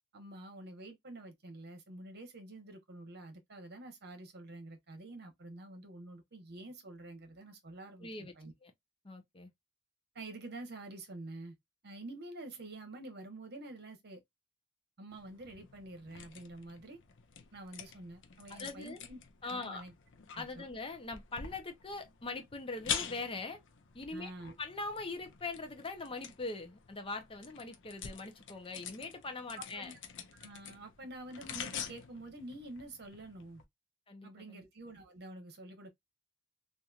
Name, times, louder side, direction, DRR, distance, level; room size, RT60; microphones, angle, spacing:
voice 1, 0.1-8.5 10.1-11.5 11.8-14.2 15.0-17.0 17.5-19.9 20.4-20.7 24.1-24.6 29.6-30.0 30.3-33.6 34.2-35.9, right 2 dB, 50° right, 1.1 m, -48 dB
voice 2, 8.0-8.3 8.6-8.7 9.0-9.5 18.5-19.0 19.4-19.8 20.4-23.6 23.9-24.3 24.6-29.9 34.1-34.6, left 3 dB, 25° left, 0.7 m, -42 dB
sound 1, 15.1-33.6, left 8 dB, 60° left, 0.6 m, -46 dB
3.0 x 2.6 x 2.4 m
head